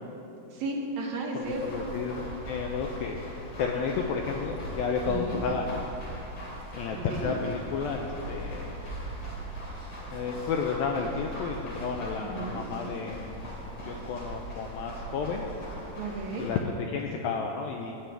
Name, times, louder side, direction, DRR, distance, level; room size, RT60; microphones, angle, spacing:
voice 1, 0.5-1.6 5.1-5.4 7.0-7.3 12.2-12.6 16.0-16.5, right 3 dB, 70° right, 0 dB, 2.3 m, -34 dB
voice 2, 1.4-5.8 6.8-8.8 10.1-13.4 13.8-15.5 16.4-17.9, left 5 dB, 85° left, 1 dB, 2.1 m, -32 dB
sound 1, 1.4-16.6, equal, 40° left, 3.3 m, -40 dB
18.5 x 9.1 x 3.4 m, 2.9 s
omnidirectional pair, 4.8 m